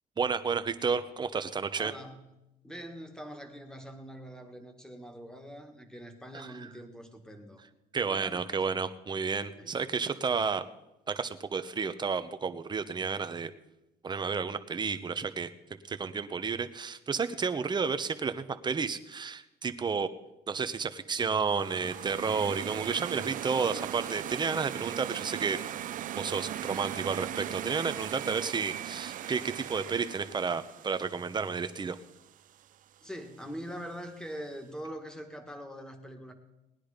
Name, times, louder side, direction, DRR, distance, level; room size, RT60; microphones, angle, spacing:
voice 1, 0.2-1.9 6.3-6.7 7.9-10.6 11.1-13.5 14.0-15.5 15.9-20.1 20.5-25.6 26.2-32.0, right 5 dB, 25° right, 10 dB, 0.9 m, -31 dB
voice 2, 1.8-2.3 2.6-7.6 8.0-8.8 9.6-9.8 33.0-36.3, equal, 5° left, 5 dB, 1.9 m, -43 dB
sound 1, 21.4-32.4, right 11 dB, 50° right, 0.5 m, -39 dB
18.5 x 10.0 x 5.1 m, 0.95 s
cardioid pair, 110°, 17 cm